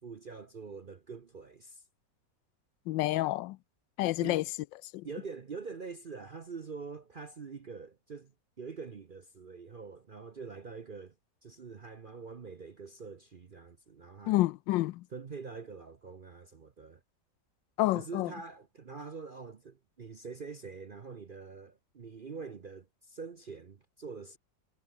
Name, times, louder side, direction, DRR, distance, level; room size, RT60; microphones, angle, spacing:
voice 1, 0.0-1.8 4.1-4.4 5.0-11.1 11.4-14.4 15.1-17.0 17.9-24.4, right 5 dB, 45° right, 0.7 m, -45 dB
voice 2, 2.9-3.6 4.0-4.4 4.9-5.1 14.3-15.1 17.8-18.3, left 17 dB, 85° left, 1.3 m, -29 dB
omnidirectional pair, 2.0 m